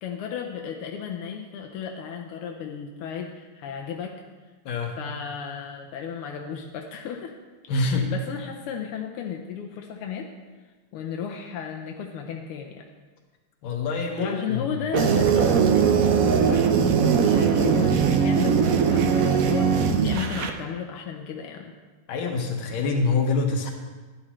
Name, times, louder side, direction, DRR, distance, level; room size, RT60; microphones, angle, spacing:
voice 1, 0.0-4.2 5.0-7.3 7.8-10.3 10.9-12.9 14.2-21.7, left 7 dB, 85° left, 2 dB, 1.6 m, -34 dB
voice 2, 4.7-5.0 7.7-8.1 13.6-14.6 22.1-23.7, left 3 dB, 70° left, 3 dB, 1.9 m, -25 dB
sound 1, 14.9-20.5, right 6 dB, 90° right, 0.7 m, -20 dB
11.5 x 10.0 x 3.1 m, 1.3 s
omnidirectional pair, 2.4 m